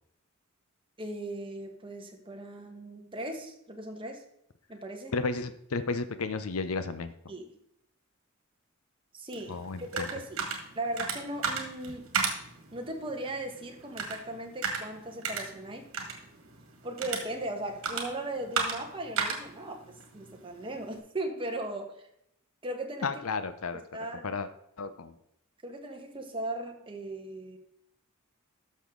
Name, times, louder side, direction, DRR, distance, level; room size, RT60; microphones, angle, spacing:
voice 1, 1.0-4.2 4.7-5.1 7.3-7.5 9.1-10.5 10.7-12.1 12.7-15.9 16.8-19.8 20.1-21.9 22.6-23.1 23.9-24.4 25.6-27.6, right 1 dB, 25° right, 2 dB, 1.5 m, -38 dB
voice 2, 5.1-7.1 9.5-10.1 23.0-23.8 24.2-24.5 24.8-25.1, left 4 dB, 85° left, 11 dB, 0.7 m, -33 dB
sound 1, 9.3-21.0, right 5 dB, 65° right, 1.9 m, -36 dB
12.0 x 6.5 x 3.8 m, 0.76 s
head